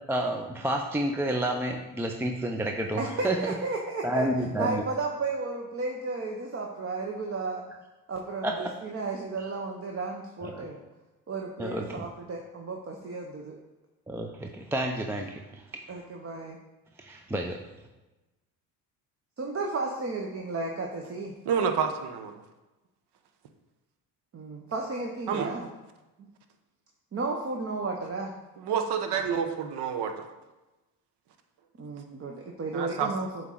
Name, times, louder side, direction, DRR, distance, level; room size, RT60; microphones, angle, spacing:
voice 1, 0.0-3.5 4.0-4.8 8.4-8.8 9.4-9.5 10.4-10.7 11.6-12.1 14.1-15.8 17.0-17.7, right 1 dB, 5° right, 3 dB, 0.4 m, -30 dB
voice 2, 3.0-4.3 4.6-7.6 8.1-10.8 11.3-13.6 15.9-16.6 19.4-21.3 24.3-25.7 27.1-28.3 31.8-33.4, right 3 dB, 30° right, 1 dB, 0.7 m, -33 dB
voice 3, 21.4-22.3 25.3-25.5 28.6-30.1 32.7-33.1, right 7 dB, 60° right, 7 dB, 0.9 m, -28 dB
7.8 x 3.2 x 3.9 m, 1.1 s
hypercardioid pair, 60°, 46 cm